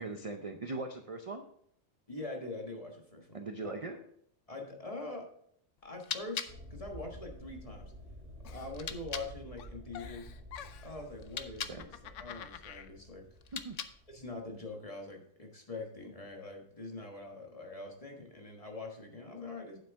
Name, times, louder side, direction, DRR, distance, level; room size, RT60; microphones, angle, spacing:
voice 1, 0.0-1.4 3.3-4.0 11.7-11.9 13.5-13.8, right 3 dB, 40° right, 6 dB, 0.6 m, -40 dB
voice 2, 2.1-3.4 3.6-3.8 4.5-5.3 5.8-7.9 8.4-10.3 10.8-13.3 14.1-19.8, left 2 dB, 30° left, 2 dB, 1.5 m, -44 dB
sound 1, 5.8-9.3 11.1-11.8 13.4-14.2, left 7 dB, 50° left, 0.5 m, -43 dB
sound 2, 6.5-14.7, equal, 65° right, 2.0 m, -50 dB
Giggle, 8.4-9.3 9.6-11.0 11.6-12.9, left 10 dB, 80° left, 1.0 m, -48 dB
9.0 x 7.7 x 3.5 m, 0.67 s
omnidirectional pair, 1.3 m